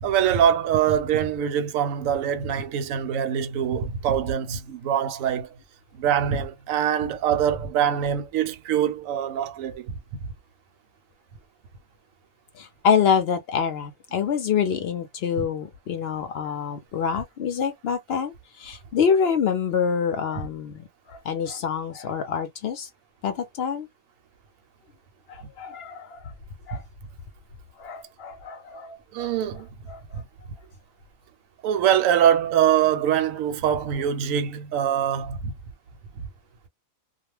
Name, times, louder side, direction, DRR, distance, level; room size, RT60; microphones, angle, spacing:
voice 1, 0.0-5.5 6.0-9.9 15.4-15.5 29.1-29.7 31.6-35.5, right 9 dB, 75° right, 0.9 m, -23 dB
voice 2, 12.5-22.9 23.2-23.9 25.3-26.3 26.7-26.8 27.8-29.3 29.9-30.2, left 7 dB, 65° left, 0.6 m, -26 dB
2.4 x 2.1 x 3.1 m
omnidirectional pair, 1.5 m